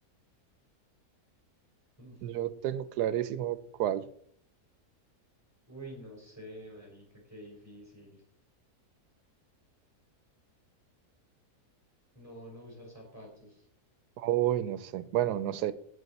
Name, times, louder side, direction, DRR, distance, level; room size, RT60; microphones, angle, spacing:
voice 1, 2.2-4.1 14.2-15.7, right 12 dB, 90° right, 15 dB, 1.2 m, -30 dB
voice 2, 5.7-8.2 12.1-13.6, right 1 dB, 10° right, -2 dB, 4.2 m, -48 dB
16.0 x 5.3 x 4.2 m, 0.63 s
omnidirectional pair, 1.7 m